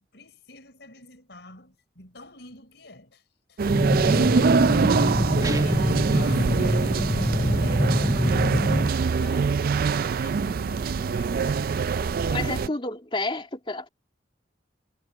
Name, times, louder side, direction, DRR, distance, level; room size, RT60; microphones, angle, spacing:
voice 1, 0.0-3.6 4.0-5.3 5.6-9.5 10.2-12.8, left 2 dB, 65° left, 5.8 m, -46 dB
sound 1, 3.6-12.7, right 5 dB, 50° right, 0.4 m, -24 dB
sound 2, 3.7-8.9, left 1 dB, 10° left, 0.7 m, -25 dB
Guitar, 5.4-6.2, right 1 dB, 20° right, 1.2 m, -30 dB
voice 2, 12.3-13.9, left 2 dB, 30° left, 2.5 m, -30 dB
head